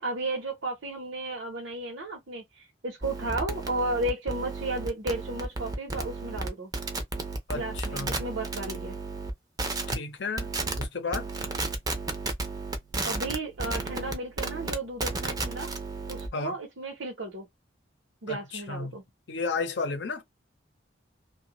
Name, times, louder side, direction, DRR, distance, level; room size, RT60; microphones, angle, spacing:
voice 1, 0.0-6.7 7.5-8.9 13.0-15.7 16.1-17.5 18.2-19.0, right 2 dB, 90° right, 0.9 m, -34 dB
sound 1, 3.0-9.3 9.6-9.9 10.4-10.8 11.1-16.3, right 3 dB, 20° right, 0.5 m, -33 dB
voice 2, 7.5-8.1 9.9-10.5 10.8-11.3 16.3-16.6 18.3-19.0 19.3-20.2, left 4 dB, 70° left, 0.7 m, -32 dB
2.6 x 2.3 x 2.9 m
head